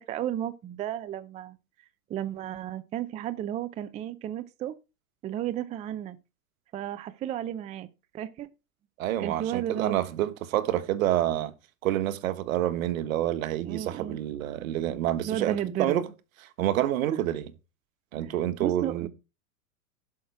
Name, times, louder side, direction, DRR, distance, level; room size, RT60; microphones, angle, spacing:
voice 1, 0.1-1.6 2.1-4.7 5.2-6.2 6.7-7.9 8.1-8.5 9.2-10.0 13.6-14.2 15.2-16.0 18.2-18.3 18.6-19.1, right 11 dB, 15° right, 0.5 m, -33 dB
voice 2, 9.0-11.5 11.8-16.1 16.6-17.4 18.1-19.1, right 12 dB, 65° right, 1.4 m, -28 dB
11.5 x 5.9 x 4.7 m
hypercardioid pair, 125°, 44 cm